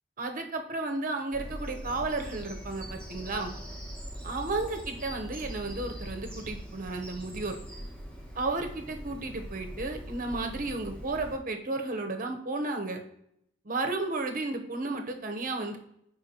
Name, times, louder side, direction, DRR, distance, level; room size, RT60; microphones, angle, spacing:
voice 1, 0.2-3.5 4.2-7.6 8.3-13.0 13.6-15.8, right 2 dB, 45° right, 5 dB, 0.9 m, -33 dB
Bird vocalization bird call bird song, 1.3-11.3, equal, 5° left, 1.5 m, -42 dB
10.5 x 4.4 x 2.9 m, 0.73 s
head